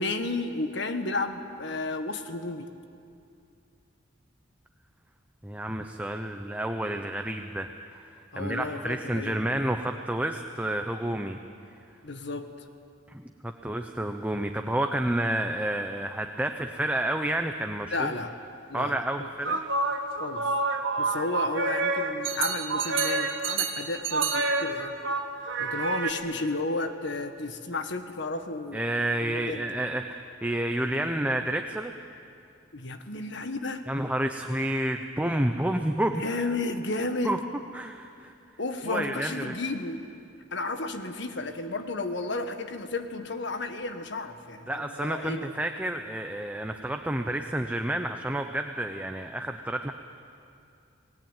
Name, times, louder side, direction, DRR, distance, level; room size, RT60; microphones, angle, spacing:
voice 1, 0.0-2.7 8.3-9.4 12.0-12.5 17.9-18.3 18.7-19.3 20.2-20.5 21.0-25.0 25.6-28.8 29.2-29.7 32.7-33.8 36.2-37.4 38.6-40.0 40.5-45.5, left 2 dB, 65° left, 8 dB, 1.6 m, -32 dB
voice 2, 5.4-11.4 13.1-18.1 18.7-19.6 28.7-31.9 33.9-36.2 37.2-37.4 37.7-38.3 38.8-39.5 44.7-49.9, right 1 dB, 10° right, 5 dB, 0.9 m, -30 dB
sound 1, 19.4-26.1, right 3 dB, 80° right, 2.1 m, -28 dB
28.0 x 19.0 x 9.1 m, 2.5 s
head